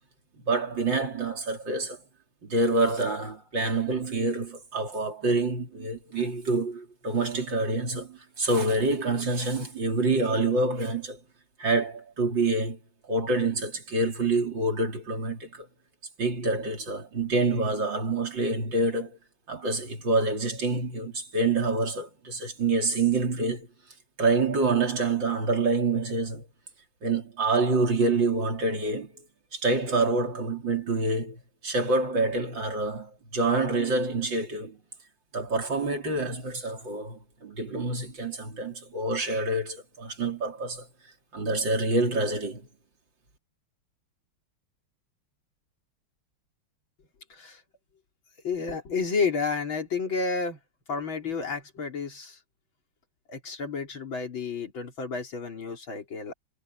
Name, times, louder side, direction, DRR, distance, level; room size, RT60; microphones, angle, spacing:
voice 1, 0.5-2.0 2.4-11.2 11.6-12.8 13.1-15.7 16.2-19.2 19.5-23.7 24.2-26.4 27.0-29.1 29.5-34.8 35.3-40.9 41.3-42.6, right 3 dB, 60° right, 4.3 m, -27 dB
voice 2, 47.3-47.6 48.4-50.6 50.9-52.4 53.3-56.3, left 5 dB, 65° left, 4.1 m, -31 dB
omnidirectional pair, 2.4 m